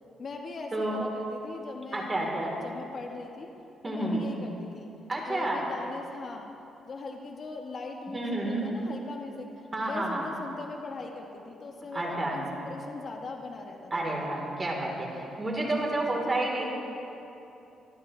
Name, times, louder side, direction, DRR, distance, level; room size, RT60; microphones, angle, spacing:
voice 1, 0.2-2.3 2.6-3.5 3.8-4.9 5.3-6.5 6.8-14.3 15.6-16.4, left 3 dB, 45° left, 2 dB, 1.3 m, -40 dB
voice 2, 1.9-2.5 3.8-4.3 5.1-5.6 8.1-8.6 9.7-10.3 11.9-12.4 13.9-16.7, right 2 dB, 25° right, -2 dB, 3.8 m, -30 dB
25.0 x 13.0 x 3.3 m, 2.9 s
cardioid pair, 90°, 0 cm